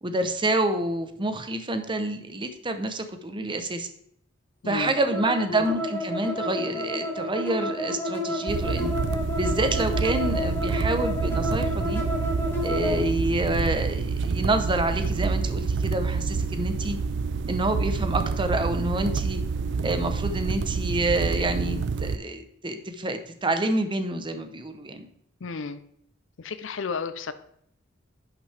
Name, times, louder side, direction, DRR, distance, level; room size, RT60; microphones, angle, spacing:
voice 1, 0.0-3.9 4.7-8.9 9.3-12.0 12.6-17.0 17.5-19.4 19.8-25.1, right 2 dB, 25° right, 7 dB, 0.8 m, -28 dB
voice 2, 4.6-4.9 25.4-25.8 26.4-27.3, left 5 dB, 70° left, 12 dB, 0.6 m, -32 dB
sound 1, 4.8-13.0, left 1 dB, 10° left, 1.6 m, -30 dB
sound 2, 8.5-22.2, right 4 dB, 60° right, 0.3 m, -28 dB
11.0 x 6.0 x 3.4 m, 0.70 s
head